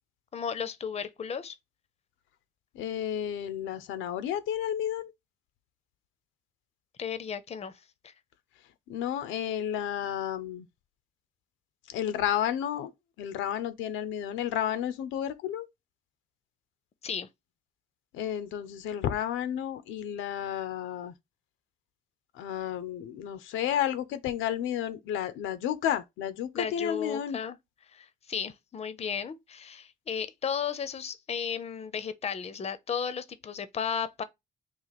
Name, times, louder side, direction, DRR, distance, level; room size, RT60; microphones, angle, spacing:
voice 1, 0.3-1.6 7.0-7.7 8.0-8.1 17.0-17.3 26.5-27.6 27.9-34.2, left 7 dB, 30° left, 0.5 m, -34 dB
voice 2, 2.8-5.1 8.9-10.7 11.9-12.9 13.2-15.7 18.1-21.1 22.4-27.4, left 10 dB, 90° left, 0.4 m, -31 dB
2.9 x 2.5 x 4.0 m
cardioid pair, 90°, 20 cm